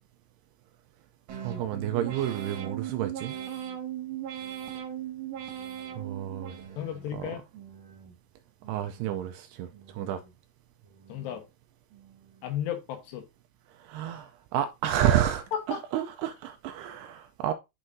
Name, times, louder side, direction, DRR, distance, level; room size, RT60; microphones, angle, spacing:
sound 1, 1.3-7.1 7.5-8.2 8.6-9.3 9.7-10.4 10.8-11.4 11.9-12.4, right 10 dB, 55° right, 2.6 m, -39 dB
voice 1, 1.3-3.4 6.0-6.8 7.1-7.3 8.7-10.2 13.8-17.5, right 11 dB, 80° right, 2.4 m, -30 dB
voice 2, 6.8-7.4 11.1-11.5 12.4-13.2 15.5-15.8, left 10 dB, 75° left, 3.2 m, -33 dB
8.7 x 6.2 x 2.6 m
omnidirectional pair, 5.1 m